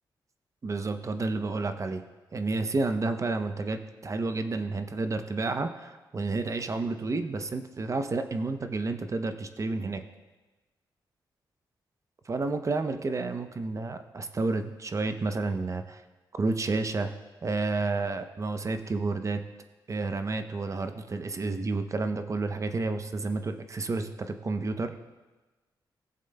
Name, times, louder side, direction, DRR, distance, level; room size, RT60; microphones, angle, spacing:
voice 1, 0.6-2.0 2.3-10.0 12.3-16.0 16.3-17.1 17.4-19.4 19.9-24.9, right 3 dB, 40° right, 8 dB, 0.7 m, -30 dB
17.0 x 7.5 x 2.2 m, 1.2 s
cardioid pair, 70°, 9 cm